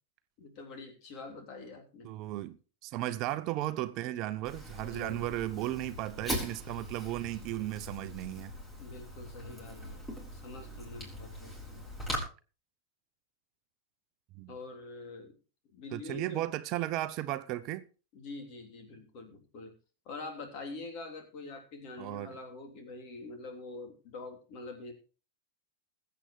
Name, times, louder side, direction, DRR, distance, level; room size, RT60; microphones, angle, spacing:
voice 1, 0.4-2.1 4.8-5.6 8.8-11.9 14.5-15.3 15.7-16.4 18.1-19.7 20.0-24.9, left 3 dB, 45° left, 3.2 m, -45 dB
voice 2, 2.0-8.5 14.4-14.5 15.9-17.8 22.0-22.4, right 15 dB, 45° right, 0.7 m, -35 dB
Fire, 4.4-12.2, equal, 15° left, 5.5 m, -41 dB
21.0 x 8.0 x 3.2 m
figure-of-eight pair, 90°, 0 cm